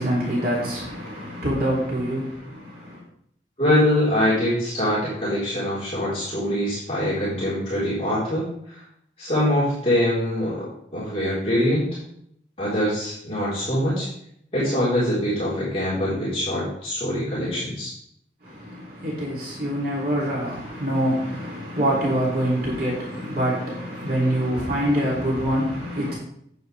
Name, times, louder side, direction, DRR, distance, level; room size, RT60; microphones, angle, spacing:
voice 1, 0.0-3.0 18.4-26.2, equal, 55° right, 3.1 m, -25 dB
voice 2, 3.6-8.8 9.2-10.7 10.9-11.9 12.6-14.1 14.5-17.9, left 1 dB, 35° left, 4.2 m, -23 dB
9.5 x 9.0 x 3.4 m
head